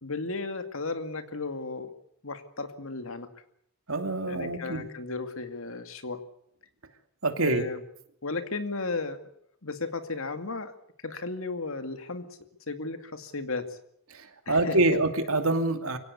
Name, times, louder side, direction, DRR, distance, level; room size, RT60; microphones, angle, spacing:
voice 1, 0.0-1.9 2.2-3.3 4.3-6.2 7.4-7.8 8.2-9.2 9.6-10.7 11.0-12.3 12.7-13.7 14.5-14.8, left 3 dB, 75° left, 9 dB, 2.3 m, -34 dB
voice 2, 3.9-4.9 7.2-7.6 14.1-16.0, right 2 dB, 80° right, 7 dB, 2.6 m, -26 dB
24.0 x 17.0 x 8.3 m, 0.73 s
head